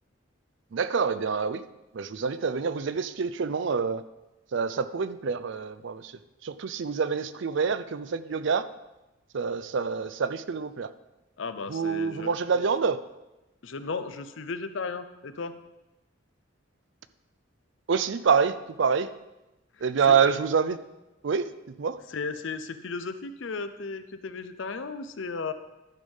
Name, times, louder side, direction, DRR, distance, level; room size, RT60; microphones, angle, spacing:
voice 1, 0.7-1.6 1.9-4.0 4.5-6.1 6.4-8.7 9.3-10.9 11.7-13.0 17.9-19.1 19.8-20.8 21.2-21.5 21.8-22.0, right 6 dB, 60° right, 13 dB, 0.5 m, -26 dB
voice 2, 11.4-12.7 13.6-15.5 20.1-20.2 22.1-25.5, left 4 dB, 65° left, 11 dB, 0.6 m, -35 dB
12.0 x 5.4 x 5.5 m, 1.0 s
head